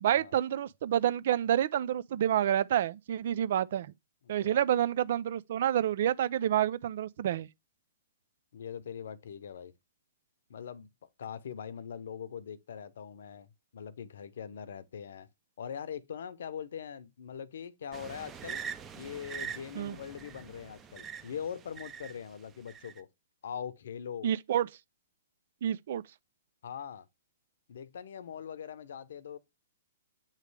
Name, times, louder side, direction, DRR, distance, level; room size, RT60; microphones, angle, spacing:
voice 1, 0.0-3.9 4.3-7.5 19.8-20.0 24.2-24.7 25.6-26.0, right 10 dB, 60° right, 0.5 m, -28 dB
voice 2, 4.2-4.6 8.5-9.7 10.5-15.3 15.6-18.6 18.9-23.1 23.4-24.3 26.6-27.1 27.7-29.4, left 8 dB, 70° left, 0.8 m, -42 dB
sound 1, 17.9-22.2 22.7-23.0, right 7 dB, 20° right, 0.7 m, -43 dB
8.9 x 3.3 x 3.3 m
hypercardioid pair, 130°, 0 cm